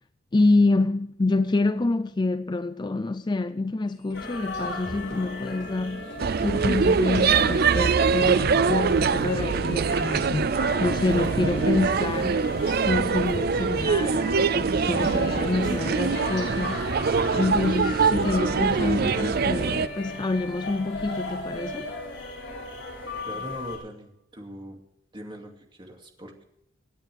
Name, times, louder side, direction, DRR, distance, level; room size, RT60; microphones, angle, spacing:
voice 1, 0.3-6.1 6.4-12.5 12.9-16.8 17.3-21.9, left 2 dB, 25° left, 0.4 m, -27 dB
sound 1, 4.0-5.8 6.1-6.3 6.6-7.8 8.1-11.8 12.1-12.3 12.6-13.8 14.1-14.3 14.6-17.8 18.1-18.3 18.6-19.8, left 1 dB, 40° left, 4.7 m, -44 dB
sound 2, 4.1-23.8, left 2 dB, 70° left, 6.1 m, -36 dB
sound 3, 6.2-19.9, right 5 dB, 50° right, 0.4 m, -23 dB
voice 2, 23.3-24.8 25.1-26.4, equal, 25° right, 2.5 m, -41 dB
26.0 x 9.9 x 3.5 m
head